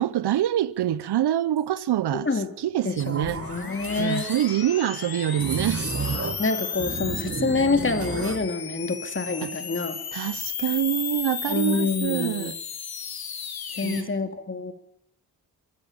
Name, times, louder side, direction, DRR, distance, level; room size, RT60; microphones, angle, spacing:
voice 1, 0.0-2.3 2.6-3.4 4.0-5.9 9.4-9.5 10.1-12.6 13.8-14.1, right 11 dB, 85° right, 0.9 m, -25 dB
voice 2, 2.8-4.3 6.4-10.0 11.5-12.5 13.8-14.7, left 3 dB, 30° left, 2.7 m, -27 dB
sound 1, 3.0-4.5 5.3-6.5 6.8-8.5, right 4 dB, 35° right, 1.5 m, -32 dB
sound 2, 3.2-14.0, left 7 dB, 70° left, 2.6 m, -34 dB
23.0 x 14.0 x 8.8 m
cardioid pair, 70°, 39 cm